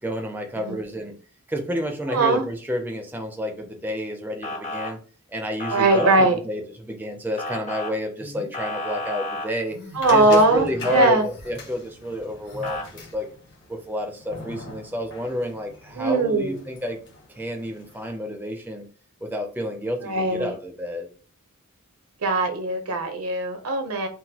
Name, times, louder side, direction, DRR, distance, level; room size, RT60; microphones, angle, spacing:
voice 1, 0.0-1.1 1.5-5.0 5.3-9.8 10.1-13.3 13.7-17.0 17.4-18.8 19.2-21.1, left 1 dB, 10° right, 4 dB, 0.4 m, -30 dB
voice 2, 2.1-2.4 5.7-6.4 9.9-11.2 16.0-16.6 20.0-20.5 22.2-24.1, right 2 dB, 75° right, 7 dB, 0.7 m, -20 dB
Motor vehicle (road) / Siren, 4.4-4.9 5.6-6.2 7.4-7.9 8.5-9.5 10.8-11.1 12.6-12.8, left 2 dB, 30° left, 0.6 m, -31 dB
sound 1, 8.2-8.5 9.6-10.2 11.1-11.5 12.4-12.8, left 1 dB, 85° left, 1.6 m, -43 dB
sound 2, 10.0-18.1, left 2 dB, 50° left, 1.0 m, -41 dB
3.8 x 2.2 x 2.8 m, 0.38 s
head